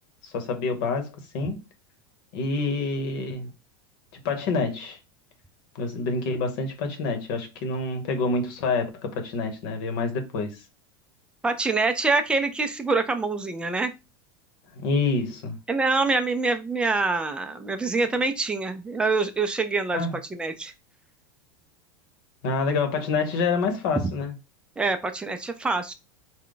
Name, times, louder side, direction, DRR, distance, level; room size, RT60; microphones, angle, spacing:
voice 1, 0.2-1.6 2.3-3.5 4.1-5.0 5.7-10.6 14.8-15.6 19.9-20.1 22.4-24.3, left 3 dB, 65° left, 1.0 m, -27 dB
voice 2, 11.4-13.9 15.7-20.1 20.3-20.7 24.8-25.9, right 3 dB, 10° right, 0.4 m, -25 dB
3.7 x 2.2 x 3.8 m
supercardioid pair, 125°, 12 cm